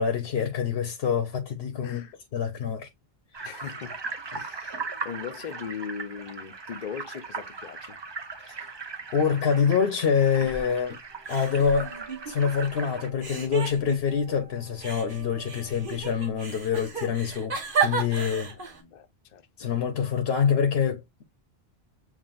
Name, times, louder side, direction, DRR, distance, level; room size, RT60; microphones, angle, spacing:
voice 1, 0.0-2.9 8.4-8.6 9.1-11.0 11.3-11.9 12.3-17.6 17.8-18.5 19.6-21.2, left 7 dB, 75° left, 1.0 m, -26 dB
voice 2, 1.8-2.1 3.4-4.0 4.3-8.0 18.5-19.7, left 7 dB, 50° left, 0.7 m, -39 dB
sound 1, 3.3-13.1, right 4 dB, 30° right, 0.6 m, -39 dB
sound 2, 9.8-10.4 10.6-18.5, right 8 dB, 80° right, 1.2 m, -52 dB
sound 3, 10.4-10.9 11.3-12.7 13.2-14.3 14.8-18.8, right 6 dB, 55° right, 1.3 m, -33 dB
7.3 x 2.5 x 2.4 m
omnidirectional pair, 1.1 m